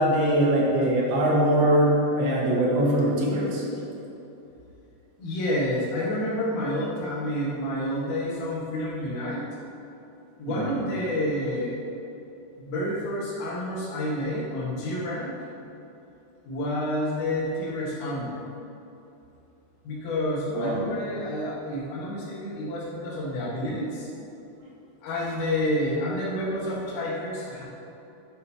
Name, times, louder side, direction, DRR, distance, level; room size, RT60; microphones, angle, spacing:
voice 1, 0.0-3.6 10.5-10.7 20.5-20.9, right 1 dB, 70° right, -4 dB, 3.4 m, -22 dB
voice 2, 5.2-9.5 10.4-11.9 12.6-15.3 16.5-18.4 19.8-24.1 25.0-27.6, left 1 dB, 85° left, -5 dB, 4.2 m, -29 dB
9.2 x 8.9 x 2.8 m, 2.8 s
omnidirectional pair, 5.7 m